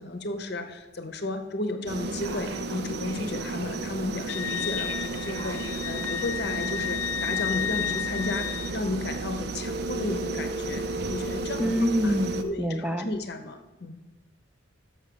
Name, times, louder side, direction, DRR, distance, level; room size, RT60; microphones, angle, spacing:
voice 1, 0.0-12.1 12.4-14.0, left 2 dB, 55° left, 7 dB, 0.9 m, -33 dB
sound 1, 1.9-12.4, right 3 dB, 55° right, 0.6 m, -34 dB
Telephone, 2.1-3.8 4.4-6.1 9.6-12.5, right 1 dB, 80° right, 1.2 m, -37 dB
Wind instrument woodwind instrument, 4.3-8.8, left 10 dB, 75° left, 0.4 m, -32 dB
voice 2, 11.6-13.1, equal, 5° right, 7 dB, 0.5 m, -26 dB
6.4 x 6.2 x 6.8 m, 1.2 s
head